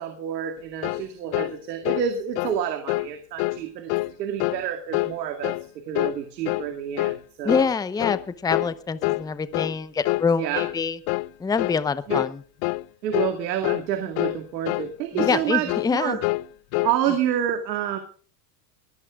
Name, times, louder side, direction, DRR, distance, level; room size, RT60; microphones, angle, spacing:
voice 1, 0.0-5.5 5.9-7.7 10.4-10.6 12.1-12.2 13.0-16.2 16.8-18.0, right 9 dB, 90° right, 5 dB, 2.3 m, -28 dB
sound 1, 0.8-1.1 1.3-1.5 1.8-2.1 2.4-2.6 2.9-3.1 3.4-3.6 3.9-4.1 4.4-4.6 4.9-5.2 5.4-5.7 5.9-6.2 6.5-6.7 7.0-7.2 7.5-7.7 8.0-8.2 8.5-8.7 9.0-9.3 9.5-9.8 10.0-10.3 10.6-10.8 11.1-11.3 11.6-11.8 12.1-12.3 12.6-12.9 13.1-13.4 13.6-13.9 14.2-14.4 14.7-14.9 15.2-15.4 15.7-15.9 16.2-17.0, left 22 dB, 50° left, 0.5 m, -26 dB
voice 2, 7.4-11.0 11.4-12.4 15.1-16.2, left 5 dB, 10° left, 14 dB, 0.7 m, -25 dB
22.5 x 15.0 x 2.4 m, 0.42 s
supercardioid pair, 125°, 48 cm